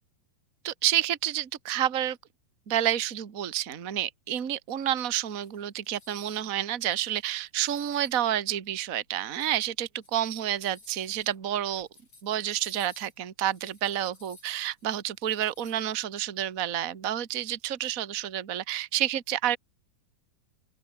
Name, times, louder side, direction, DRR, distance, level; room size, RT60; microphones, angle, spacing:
voice 1, 0.6-2.2 2.7-11.9 12.2-19.6, right 11 dB, 55° right, 0.9 m, -29 dB
sound 1, 5.0-6.5 6.8-8.3 8.9-9.0 9.8-16.0, left 3 dB, 35° left, 9.0 m, -57 dB
open air
omnidirectional pair, 4.4 m